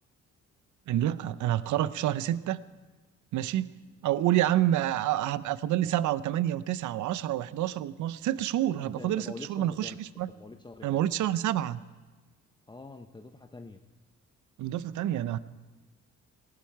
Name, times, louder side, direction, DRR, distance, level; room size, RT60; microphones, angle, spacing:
voice 1, 0.9-2.6 3.3-3.7 4.0-10.3 10.8-11.8 14.6-15.4, right 12 dB, 75° right, 16 dB, 0.7 m, -28 dB
voice 2, 8.8-10.0 10.4-11.0 12.7-13.8, left 3 dB, 15° left, 6 dB, 0.8 m, -45 dB
19.0 x 16.5 x 4.6 m, 1.3 s
cardioid pair, 90°, 30 cm